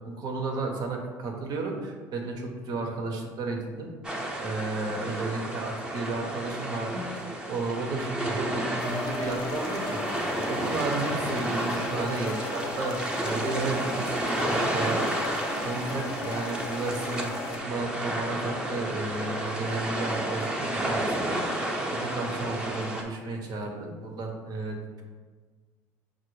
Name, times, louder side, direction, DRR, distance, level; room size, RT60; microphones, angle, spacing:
voice 1, 0.0-3.9 4.4-7.1 7.5-10.0 10.5-15.1 15.6-21.6 21.9-25.0, right 3 dB, 55° right, 2 dB, 0.7 m, -33 dB
sound 1, 4.0-23.0, right 1 dB, 10° right, 0.7 m, -31 dB
sound 2, 8.8-17.6, left 3 dB, 55° left, 0.5 m, -37 dB
5.1 x 2.0 x 3.1 m, 1.5 s
supercardioid pair, 80°, 8 cm